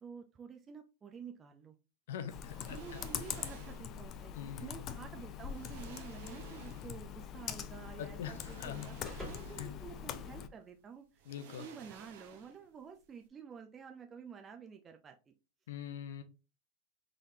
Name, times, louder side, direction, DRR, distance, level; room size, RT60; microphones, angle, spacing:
voice 1, 0.0-1.8 2.7-8.9 9.2-11.1 11.6-15.3, right 6 dB, 20° right, 4 dB, 0.5 m, -50 dB
voice 2, 2.1-3.0 4.3-4.7 8.0-8.9 9.6-9.7 11.3-11.6 15.7-16.2, left 9 dB, 80° left, 9 dB, 0.7 m, -43 dB
Computer keyboard, 2.3-10.5, left 9 dB, 40° left, 0.4 m, -43 dB
sound 1, 2.4-4.0 5.0-5.1 5.5-7.1 8.2-9.9 10.2-10.4 11.2-12.8 13.0-13.2, right 6 dB, 65° right, 0.8 m, -55 dB
sound 2, 6.5-10.9, equal, ahead, 1.8 m, -54 dB
3.8 x 3.3 x 2.7 m, 0.31 s
supercardioid pair, 125°, 0 cm